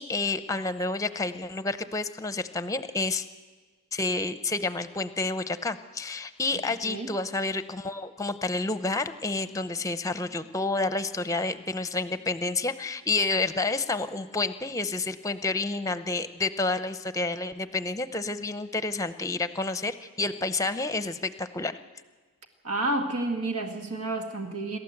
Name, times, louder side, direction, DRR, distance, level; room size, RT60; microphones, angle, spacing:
voice 1, 0.0-3.2 3.9-21.8, left 3 dB, 15° left, 12 dB, 0.7 m, -29 dB
voice 2, 22.6-24.8, right 2 dB, 85° right, 5 dB, 1.8 m, -30 dB
27.5 x 13.0 x 8.0 m, 1.4 s
head